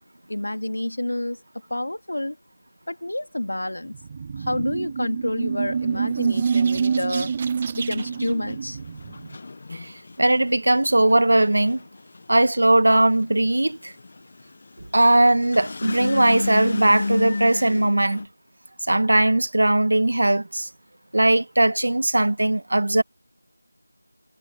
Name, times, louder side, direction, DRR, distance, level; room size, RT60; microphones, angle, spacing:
voice 1, 0.3-1.4 1.7-2.4 2.9-3.9 4.4-7.3 7.7-8.8, left 1 dB, 90° left, 2.9 m, -28 dB
sound 1, 3.9-9.4, right 6 dB, 15° right, 0.4 m, -26 dB
sound 2, 7.9-18.2, left 3 dB, 25° left, 1.2 m, -32 dB
voice 2, 10.2-11.8 12.3-13.9 14.9-18.2 18.9-20.7 21.1-23.0, right 1 dB, 50° right, 1.9 m, -19 dB
figure-of-eight pair, 180°, 0 cm